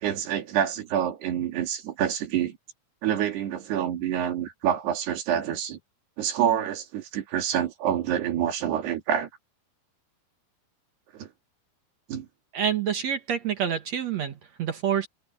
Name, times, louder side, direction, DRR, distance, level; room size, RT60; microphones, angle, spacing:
voice 1, 0.0-2.6 3.0-5.8 6.2-9.3 11.1-11.3 12.1-12.3, right 9 dB, 85° right, 4.6 m, -27 dB
voice 2, 12.5-15.1, right 8 dB, 55° right, 2.2 m, -27 dB
omnidirectional pair, 4.6 m